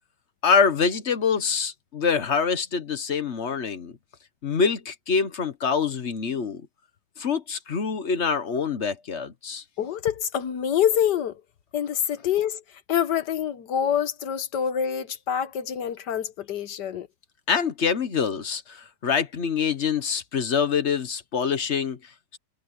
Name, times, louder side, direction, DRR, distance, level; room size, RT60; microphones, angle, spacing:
voice 1, 0.4-3.9 4.4-6.7 7.2-9.6 17.5-22.4, left 6 dB, 45° left, 1.2 m, -25 dB
voice 2, 9.8-11.4 11.7-12.6 12.9-17.1, left 9 dB, 65° left, 1.6 m, -26 dB
omnidirectional pair, 2.0 m